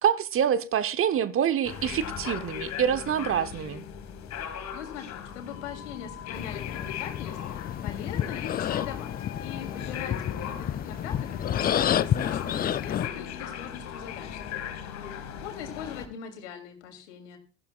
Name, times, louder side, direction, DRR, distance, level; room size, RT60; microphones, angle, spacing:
voice 1, 0.0-3.8, right 9 dB, 35° right, 1.0 m, -26 dB
sound 1, 1.6-16.1, left 9 dB, 45° left, 2.1 m, -38 dB
voice 2, 4.7-9.1 9.4-17.4, left 8 dB, 70° left, 3.1 m, -42 dB
sound 2, 6.3-13.1, left 10 dB, 25° left, 0.5 m, -30 dB
17.5 x 14.0 x 2.4 m
figure-of-eight pair, 65°, 37 cm